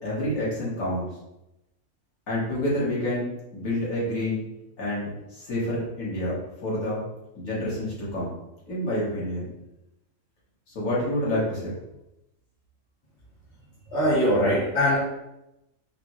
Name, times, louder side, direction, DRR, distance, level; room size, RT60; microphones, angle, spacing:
voice 1, 0.0-1.1 2.3-4.4 4.8-7.0 7.3-8.3 8.7-9.5 10.7-11.7, left 1 dB, 90° left, -7 dB, 1.7 m, -28 dB
voice 2, 13.9-15.0, equal, 55° left, -8 dB, 1.4 m, -21 dB
5.0 x 2.1 x 3.0 m, 0.90 s
omnidirectional pair, 1.4 m